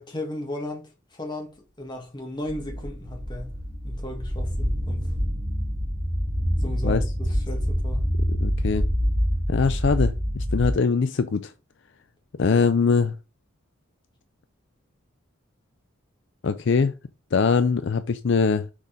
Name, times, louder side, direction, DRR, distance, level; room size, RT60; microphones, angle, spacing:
voice 1, 0.0-3.5 3.8-5.1 6.6-8.1, left 1 dB, 20° left, 1.7 m, -35 dB
sound 1, 2.5-10.8, equal, 45° right, 2.4 m, -26 dB
voice 2, 8.4-8.8 9.5-11.5 12.4-13.1 16.4-16.9 17.3-18.6, left 5 dB, 55° left, 0.4 m, -22 dB
6.3 x 4.1 x 5.0 m
head